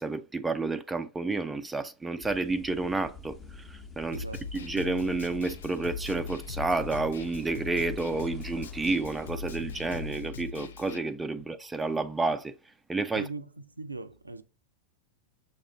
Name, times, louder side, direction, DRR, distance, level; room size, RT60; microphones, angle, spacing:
voice 1, 0.0-4.2 4.5-12.5 12.9-13.3, right 3 dB, 10° right, 0.4 m, -30 dB
sound 1, 2.2-10.2, left 4 dB, 20° left, 0.9 m, -47 dB
Snare drum, 4.1-11.0, left 5 dB, 65° left, 0.4 m, -40 dB
voice 2, 4.1-4.5 11.4-11.5 13.1-14.4, right 3 dB, 80° right, 0.3 m, -40 dB
6.3 x 2.4 x 3.0 m
figure-of-eight pair, 90°, 0 cm